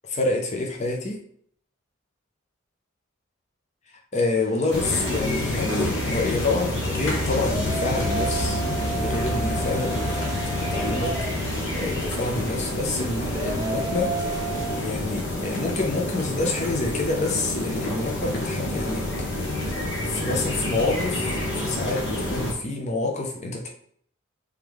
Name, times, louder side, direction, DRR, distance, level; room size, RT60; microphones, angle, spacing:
voice 1, 0.1-1.2 4.1-19.1 19.4-19.5 20.0-23.7, left 2 dB, 35° left, 1 dB, 0.6 m, -28 dB
sound 1, 4.4-14.8, right 4 dB, 20° right, 0.4 m, -35 dB
sound 2, 4.7-22.5, left 1 dB, 60° left, 1.1 m, -28 dB
3.5 x 3.2 x 3.5 m, 0.63 s
head